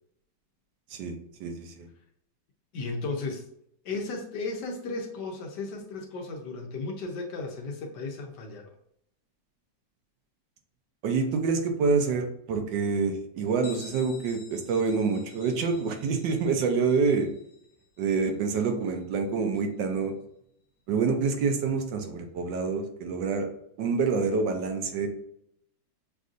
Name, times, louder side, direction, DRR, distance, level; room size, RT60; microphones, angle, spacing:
voice 1, 0.9-1.9 11.0-17.3 18.0-20.1 20.9-23.5 23.8-25.1, right 4 dB, 80° right, 5 dB, 1.3 m, -27 dB
voice 2, 2.7-3.5 3.8-8.7, left 3 dB, 75° left, 2 dB, 1.2 m, -35 dB
Bell, 13.6-19.1, left 4 dB, 55° left, 0.4 m, -51 dB
6.3 x 2.6 x 2.5 m, 0.71 s
omnidirectional pair, 1.9 m